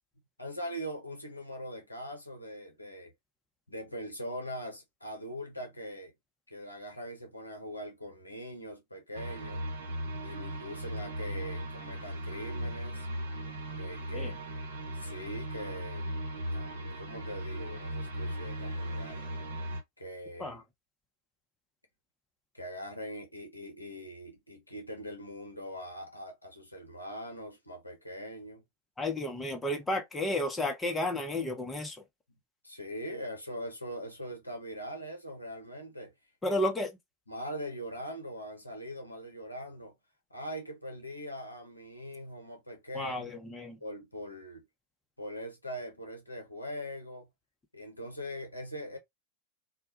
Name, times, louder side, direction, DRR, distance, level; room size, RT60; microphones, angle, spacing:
voice 1, 0.4-3.1 3.7-6.1 6.5-9.6 10.2-13.1 13.8-14.3 14.9-16.1 16.5-19.2 20.0-20.6 22.5-28.6 32.6-36.1 36.5-36.6 37.3-40.0 40.3-43.4 43.8-44.6 45.2-47.3 47.7-49.0, equal, 85° left, 0.7 m, -42 dB
sound 1, 9.1-19.8, equal, 65° right, 0.7 m, -37 dB
voice 2, 29.0-32.0 36.4-36.9 42.9-43.8, left 1 dB, 10° left, 0.6 m, -32 dB
2.2 x 2.0 x 2.8 m
figure-of-eight pair, 90°, 0 cm